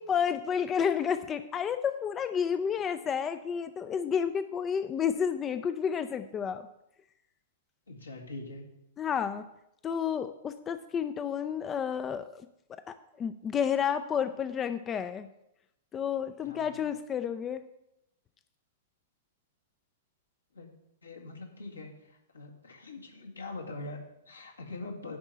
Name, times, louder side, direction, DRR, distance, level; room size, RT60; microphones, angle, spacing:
voice 1, 0.1-6.6 9.0-9.4 9.8-12.4 12.9-15.3 15.9-17.6, left 7 dB, 20° left, 11 dB, 0.4 m, -30 dB
voice 2, 7.9-8.6 16.4-16.7 20.5-20.7 21.0-25.2, left 2 dB, 80° left, 0 dB, 1.9 m, -43 dB
10.0 x 4.4 x 7.4 m, 0.84 s
figure-of-eight pair, 105°, 0 cm